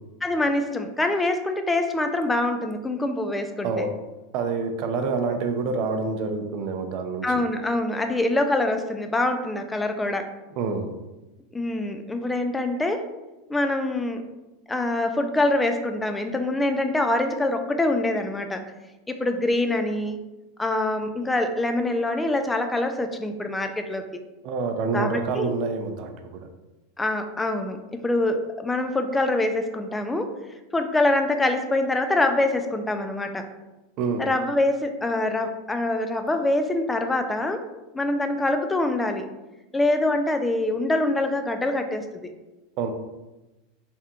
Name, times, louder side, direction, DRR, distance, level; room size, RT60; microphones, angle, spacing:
voice 1, 0.2-3.9 7.2-10.3 11.5-13.1 13.5-14.2 14.7-18.6 19.1-20.2 20.6-24.1 24.9-25.5 27.0-30.4 30.7-33.5 34.2-37.6 37.9-39.3 39.7-42.3, left 2 dB, 10° left, 7 dB, 0.4 m, -25 dB
voice 2, 4.3-7.3 10.6-10.9 24.4-26.5 34.0-34.2 42.8-42.9, right 4 dB, 50° right, 6 dB, 0.5 m, -27 dB
3.5 x 3.4 x 2.9 m, 1.1 s
supercardioid pair, 130°, 0 cm